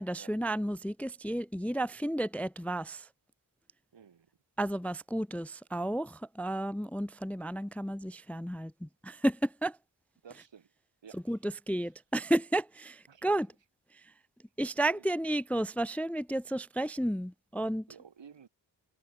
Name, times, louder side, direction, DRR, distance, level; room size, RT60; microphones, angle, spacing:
voice 1, 0.0-3.1 4.6-9.8 11.3-13.5 14.6-17.9, right 1 dB, 5° left, 0.3 m, -32 dB
voice 2, 3.9-4.3 10.2-10.7 11.0-11.4 11.8-11.9 13.1-13.5 14.9-15.2 17.9-18.5, right 7 dB, 80° right, 2.7 m, -53 dB
wide cardioid pair, 85°, 43 cm